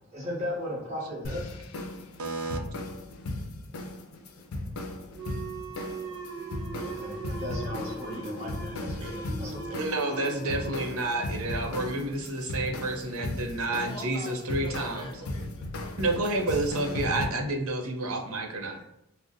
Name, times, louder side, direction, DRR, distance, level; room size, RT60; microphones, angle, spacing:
voice 1, 0.1-1.6 6.8-9.8, left 1 dB, 30° right, 0.9 m, -37 dB
sound 1, 1.2-17.3, left 2 dB, 80° left, 0.5 m, -37 dB
voice 2, 2.2-2.6 9.0-9.1 9.6-15.1 16.0-18.8, right 2 dB, 90° right, 0.5 m, -30 dB
sound 2, 5.1-12.3, right 3 dB, 60° right, 1.0 m, -40 dB
voice 3, 13.9-16.1, left 2 dB, 25° left, 0.4 m, -43 dB
2.5 x 2.1 x 3.6 m
head